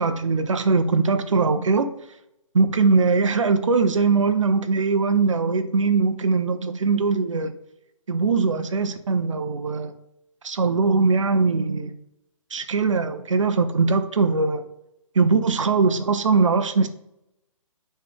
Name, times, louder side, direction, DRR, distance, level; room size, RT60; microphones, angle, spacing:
voice 1, 0.0-1.9 2.5-7.5 8.1-9.9 10.4-11.9 12.5-14.6 15.1-16.9, right 4 dB, 65° right, 9 dB, 0.6 m, -21 dB
9.7 x 3.4 x 3.6 m, 0.86 s
figure-of-eight pair, 135°, 18 cm